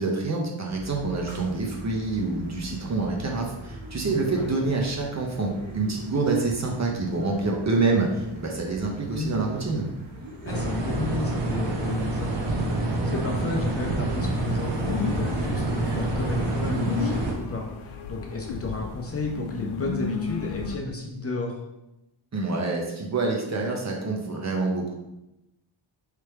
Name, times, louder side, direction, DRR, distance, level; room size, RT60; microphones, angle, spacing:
voice 1, 0.0-9.8 22.3-24.9, right 3 dB, 35° right, 0 dB, 0.7 m, -27 dB
sound 1, 0.7-17.4, right 1 dB, 90° right, 1.5 m, -42 dB
voice 2, 4.1-4.6 9.1-9.5 10.4-21.6, left 3 dB, 30° left, 0 dB, 0.6 m, -32 dB
sound 2, 10.5-17.3, right 2 dB, 60° right, 0.9 m, -27 dB
sound 3, 14.2-20.8, left 5 dB, 85° left, 0.6 m, -34 dB
3.3 x 3.3 x 4.4 m, 0.91 s
wide cardioid pair, 135°, 48 cm